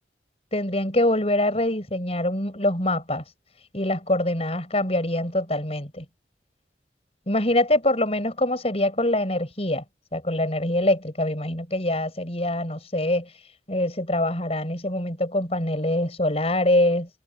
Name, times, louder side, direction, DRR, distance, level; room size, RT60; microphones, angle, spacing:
voice 1, 0.5-3.2 3.7-6.0 7.3-9.8 10.1-13.3 13.7-17.1, left 1 dB, 35° left, 6.7 m, -24 dB
head